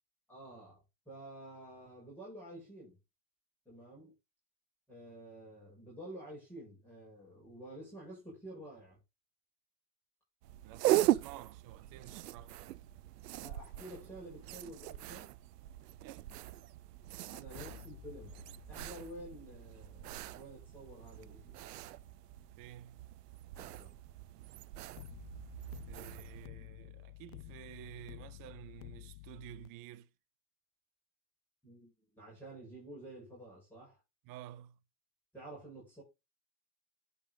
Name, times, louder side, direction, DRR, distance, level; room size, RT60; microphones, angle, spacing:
voice 1, 0.3-3.0 3.6-4.1 4.9-9.0 13.4-15.3 17.3-18.4 18.7-21.6 23.5-23.9 31.6-34.0 35.3-36.0, right 1 dB, 5° left, 6.3 m, -50 dB
sound 1, 10.4-26.5, right 14 dB, 80° right, 0.6 m, -39 dB
voice 2, 10.6-12.5 16.0-16.2 22.6-23.1 25.9-30.1 34.2-34.8, right 13 dB, 45° right, 0.8 m, -50 dB
sound 2, 17.5-22.6 25.0-29.7, left 18 dB, 45° left, 0.6 m, -53 dB
10.5 x 5.3 x 3.8 m
hypercardioid pair, 95°, 47 cm